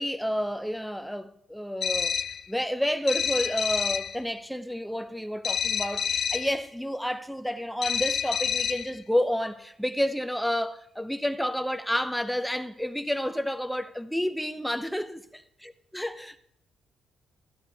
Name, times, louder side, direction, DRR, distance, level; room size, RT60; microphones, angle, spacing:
voice 1, 0.0-2.2 2.5-15.2 15.9-16.4, equal, ahead, 0.5 m, -30 dB
sound 1, 1.8-2.5 3.1-4.2 5.4-6.6 7.8-9.0, left 7 dB, 55° left, 0.3 m, -28 dB
13.0 x 8.8 x 2.7 m
cardioid pair, 90°, 0 cm